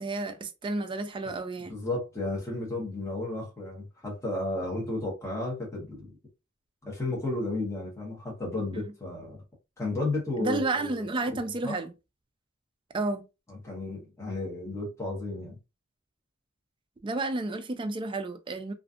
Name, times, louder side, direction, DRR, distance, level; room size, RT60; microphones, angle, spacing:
voice 1, 0.0-1.8 10.4-11.9 12.9-13.2 17.0-18.7, right 2 dB, 25° right, 0.3 m, -31 dB
voice 2, 1.7-6.2 6.8-9.4 9.8-11.4 11.6-11.8 13.5-15.6, left 2 dB, 15° left, 0.9 m, -33 dB
2.4 x 2.3 x 2.4 m
head